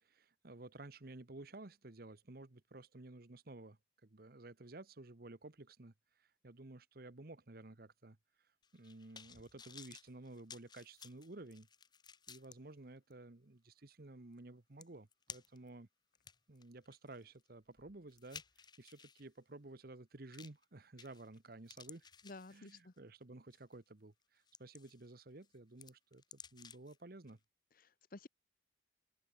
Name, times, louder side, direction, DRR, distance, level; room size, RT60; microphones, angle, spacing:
voice 1, 0.0-11.7 12.3-15.9 16.5-22.1 22.5-27.4, right 2 dB, 55° right, 1.1 m, -54 dB
sound 1, 8.6-12.6 13.1-13.2 14.4-14.5 14.8-15.7 16.1-19.2 20.3-20.6 21.0-21.4 21.7-23.0 23.5-23.7 24.2-25.1 25.4-27.0 27.3-27.4, left 6 dB, 25° left, 1.2 m, -56 dB
voice 2, 22.2-22.9 27.7-28.3, left 2 dB, 50° left, 1.1 m, -53 dB
open air
head